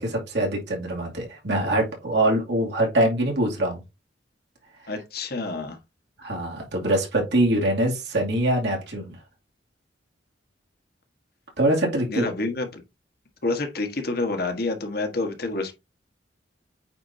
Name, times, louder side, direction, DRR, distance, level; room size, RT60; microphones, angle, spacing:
voice 1, 0.0-3.8 6.2-9.1 11.6-12.3, right 1 dB, 65° right, 2.6 m, -23 dB
voice 2, 4.9-5.8 12.1-12.8 13.4-15.7, left 2 dB, 55° left, 1.4 m, -28 dB
8.7 x 4.4 x 2.8 m
head